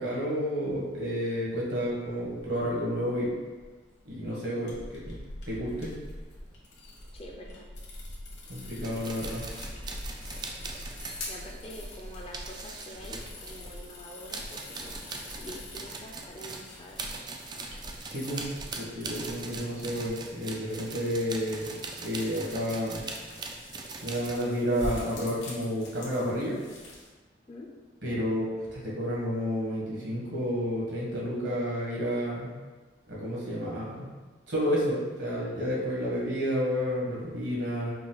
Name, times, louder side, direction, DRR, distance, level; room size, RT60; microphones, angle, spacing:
voice 1, 0.0-3.3 4.0-4.8 5.0-5.1 5.5-5.9 8.5-9.4 18.0-18.5 18.7-21.7 22.0-23.0 24.0-26.6 28.0-32.5 33.1-34.1 34.5-37.9, equal, 70° right, -5 dB, 1.4 m, -30 dB
sound 1, 2.1-20.1, left 1 dB, 65° left, 1.2 m, -45 dB
voice 2, 7.1-7.7 11.3-15.1 15.3-17.0 27.5-27.7, equal, 30° left, 0 dB, 0.5 m, -46 dB
sound 2, 8.8-13.9 14.3-24.4, right 3 dB, 25° right, 0.3 m, -41 dB
sound 3, 9.4-27.1, left 1 dB, 85° left, 1.3 m, -47 dB
5.0 x 2.3 x 3.8 m, 1.3 s
head